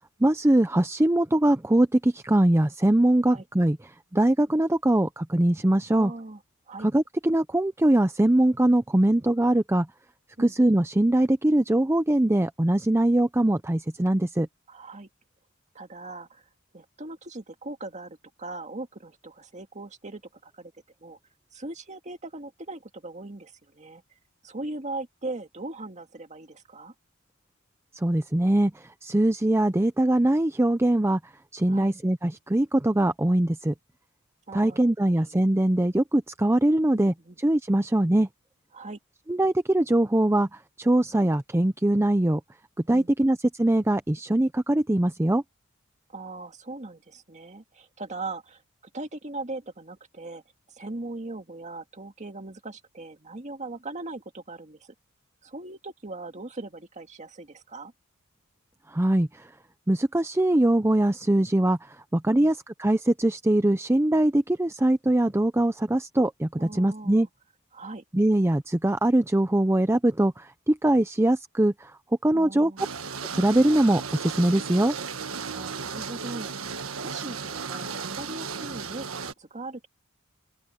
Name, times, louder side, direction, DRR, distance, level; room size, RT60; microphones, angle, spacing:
voice 1, 0.2-3.8 4.1-6.1 6.8-9.9 10.4-14.5 28.0-28.7 29.0-31.2 31.5-33.7 34.5-37.1 37.4-38.3 39.3-40.5 40.8-42.4 42.9-45.4 58.9-59.3 59.9-61.8 62.1-67.3 68.1-71.9 72.2-72.7 73.3-74.9, right 1 dB, 10° right, 0.6 m, -22 dB
voice 2, 5.9-6.4 6.7-6.9 10.4-10.5 14.7-15.1 15.7-16.4 16.7-20.7 21.0-21.2 21.5-24.0 24.4-26.9 31.7-31.9 34.5-35.4 36.9-37.4 38.7-39.0 42.9-43.3 46.1-48.6 48.9-50.4 50.7-54.9 55.4-57.9 62.3-62.5 66.6-67.3 67.7-68.0 72.3-72.9 75.5-79.9, right 2 dB, 35° right, 1.9 m, -39 dB
sound 1, 72.8-79.3, right 5 dB, 80° right, 1.5 m, -35 dB
open air
head